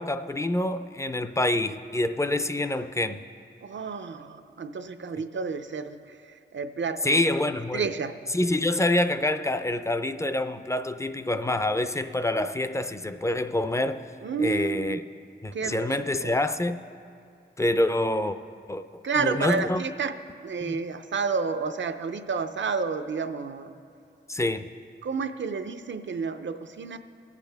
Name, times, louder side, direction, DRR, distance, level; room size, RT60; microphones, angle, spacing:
voice 1, 0.0-3.2 7.0-7.9 8.3-14.0 14.4-15.0 15.4-16.8 17.6-18.4 18.7-19.8 20.6-20.8 24.3-24.7, left 1 dB, 15° left, 11 dB, 0.4 m, -26 dB
voice 2, 3.6-6.0 6.5-7.2 7.7-8.1 14.2-15.0 15.5-16.3 19.0-20.1 20.4-23.7 25.0-27.0, right 5 dB, 80° right, 9 dB, 0.6 m, -30 dB
20.5 x 8.3 x 3.4 m, 2.4 s
wide cardioid pair, 90°, 19 cm